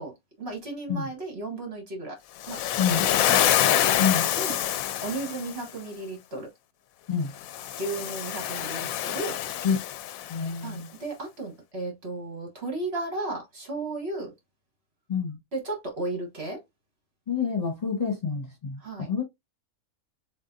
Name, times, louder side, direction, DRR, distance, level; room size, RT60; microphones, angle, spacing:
voice 1, 0.0-2.2 2.5-2.6 2.9-3.8 4.3-4.6 5.0-6.5 7.8-9.4 10.6-14.3 15.5-16.6 18.8-19.1, right 2 dB, 50° right, 1.7 m, -34 dB
Waves surf, 2.4-5.6 7.4-10.5, left 11 dB, 75° left, 1.0 m, -26 dB
voice 2, 10.3-10.9 15.1-15.4 17.3-19.2, left 6 dB, 30° left, 1.2 m, -27 dB
7.2 x 2.5 x 2.6 m
omnidirectional pair, 1.5 m